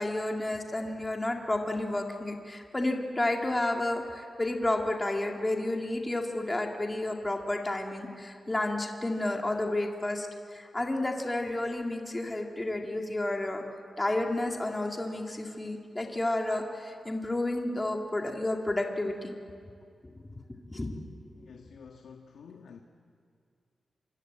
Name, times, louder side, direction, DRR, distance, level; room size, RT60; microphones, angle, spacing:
voice 1, 0.0-13.6 14.0-19.3 20.0-20.1 20.6-21.3, left 1 dB, 15° left, 2 dB, 2.0 m, -31 dB
voice 2, 21.5-22.8, left 6 dB, 85° left, 4 dB, 1.4 m, -49 dB
25.5 x 25.5 x 8.8 m, 2.3 s
wide cardioid pair, 165°, 0 cm